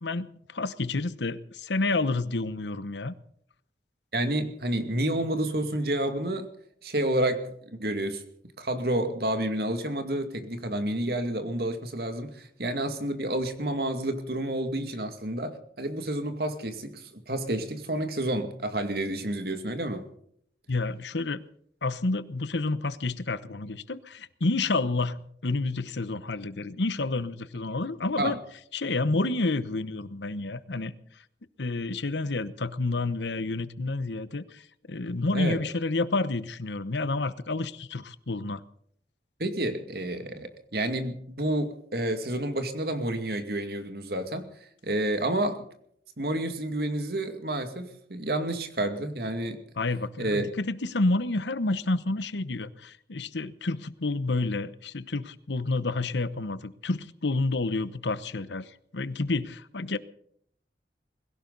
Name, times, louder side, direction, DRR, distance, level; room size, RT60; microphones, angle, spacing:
voice 1, 0.0-3.1 20.7-21.5 21.8-28.4 28.7-30.9 31.6-38.6 49.8-58.7 58.9-60.0, left 2 dB, 85° left, 1.0 m, -29 dB
voice 2, 4.1-6.5 6.8-7.5 7.8-8.2 8.6-20.0 28.2-28.4 35.3-35.6 39.4-44.4 44.8-45.7 46.2-49.6 50.2-50.5, right 1 dB, 60° right, 2.3 m, -29 dB
21.5 x 17.0 x 4.1 m
head